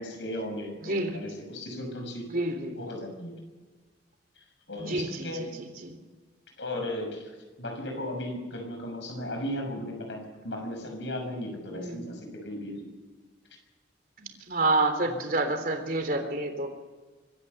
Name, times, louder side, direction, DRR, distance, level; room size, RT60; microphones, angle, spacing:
voice 1, 0.0-2.3 2.8-3.3 4.7-5.5 6.6-7.3 7.6-12.9 15.1-15.2, left 1 dB, 80° left, 3 dB, 6.4 m, -36 dB
voice 2, 0.8-1.2 2.3-2.8 4.8-5.5 5.8-5.9 11.7-12.0 14.2-16.7, right 2 dB, 50° right, 6 dB, 3.5 m, -28 dB
24.5 x 14.0 x 8.0 m, 1.3 s
head